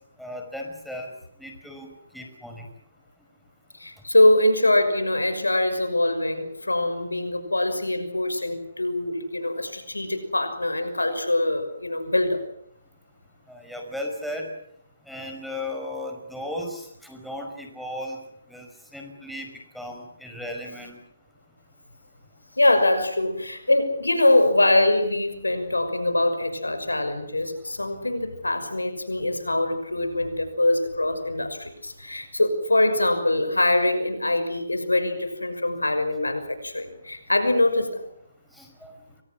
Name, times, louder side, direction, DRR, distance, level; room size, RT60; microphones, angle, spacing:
voice 1, 0.2-1.1 1.4-1.9 2.1-2.7 13.5-14.5 15.1-18.2 18.5-19.5 19.7-21.0 38.6-38.9, left 1 dB, ahead, 1 dB, 5.4 m, -35 dB
voice 2, 3.7-12.4 22.6-38.1, left 1 dB, 90° left, 9 dB, 5.9 m, -23 dB
29.5 x 24.5 x 6.2 m, 0.73 s
figure-of-eight pair, 140°, 0 cm